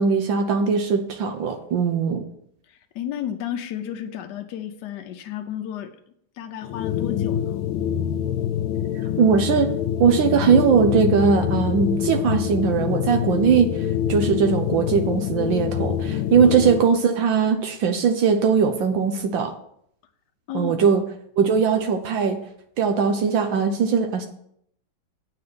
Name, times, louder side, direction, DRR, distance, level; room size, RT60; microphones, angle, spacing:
voice 1, 0.0-2.2 9.2-9.7 10.0-13.8 14.1-19.5 20.5-21.0 21.4-22.4 22.8-24.3, right 6 dB, 70° right, 5 dB, 1.5 m, -20 dB
voice 2, 2.7-5.9 6.4-7.6 16.4-16.5 20.5-20.7, left 10 dB, 65° left, 4 dB, 1.2 m, -32 dB
sound 1, 6.6-16.9, left 9 dB, 85° left, 1.4 m, -25 dB
8.6 x 4.4 x 6.7 m, 0.69 s
omnidirectional pair, 2.2 m